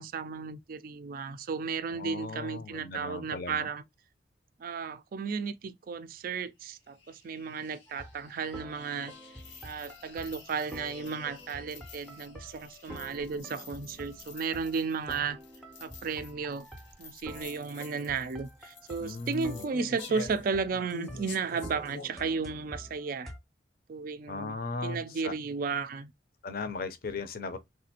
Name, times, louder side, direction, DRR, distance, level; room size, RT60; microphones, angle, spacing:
voice 1, 0.0-3.8 4.6-9.1 9.6-15.4 15.8-16.7 17.0-23.3 23.9-24.6 24.8-26.1, right 5 dB, 50° right, 0.3 m, -34 dB
voice 2, 1.9-3.7 19.0-19.6 24.3-25.3 26.4-27.6, left 3 dB, 55° left, 0.5 m, -37 dB
sound 1, 6.8-22.2, left 3 dB, 80° left, 0.8 m, -48 dB
sound 2, 7.9-23.4, equal, 5° left, 0.5 m, -48 dB
3.2 x 2.5 x 2.7 m
head